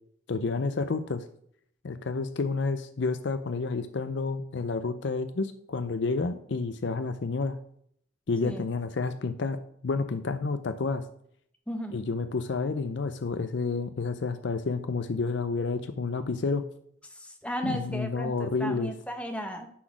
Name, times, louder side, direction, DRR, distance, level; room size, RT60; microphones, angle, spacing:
voice 1, 0.3-1.2 1.8-7.6 8.3-9.6 9.8-11.0 11.9-16.6 17.6-18.9, left 4 dB, 60° left, 11 dB, 0.5 m, -30 dB
voice 2, 11.7-12.0 17.1-19.7, equal, 5° left, 4 dB, 0.9 m, -35 dB
9.9 x 4.0 x 6.0 m, 0.67 s
head